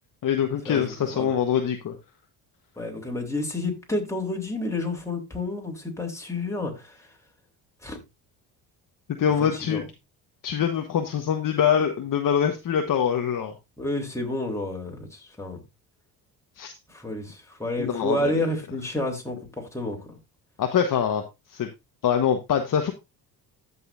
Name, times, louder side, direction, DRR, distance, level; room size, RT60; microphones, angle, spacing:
voice 1, 0.2-1.9 9.1-9.8 10.4-13.5 16.6-16.7 17.8-18.5 20.6-21.2 21.5-21.7 22.0-22.9, left 8 dB, 50° left, 1.3 m, -24 dB
voice 2, 2.8-7.0 7.8-8.0 9.4-9.8 13.8-15.6 16.9-20.2, left 1 dB, 5° left, 3.3 m, -30 dB
14.5 x 5.5 x 2.6 m
supercardioid pair, 65°, 43 cm